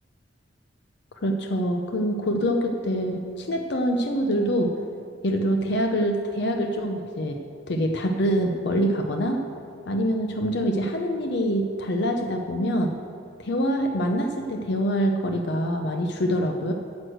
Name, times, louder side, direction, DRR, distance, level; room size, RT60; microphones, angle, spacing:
voice 1, 1.2-4.7 5.2-7.4 7.7-9.4 9.9-12.9 13.4-16.7, equal, 65° left, 4 dB, 0.7 m, -25 dB
9.5 x 6.3 x 7.8 m, 2.5 s
head